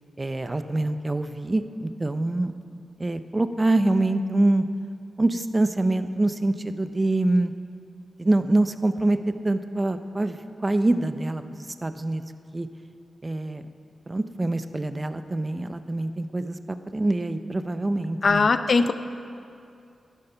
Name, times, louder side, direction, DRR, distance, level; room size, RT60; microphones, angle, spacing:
voice 1, 0.2-2.5 3.0-4.6 5.2-7.5 8.2-9.2 9.4-12.2 12.5-12.7 13.2-13.6 14.1-18.5, right 2 dB, 25° right, 10 dB, 0.5 m, -25 dB
voice 2, 18.2-18.9, left 4 dB, 50° left, 11 dB, 0.5 m, -20 dB
11.5 x 9.9 x 5.6 m, 2.5 s
wide cardioid pair, 95°, 0 cm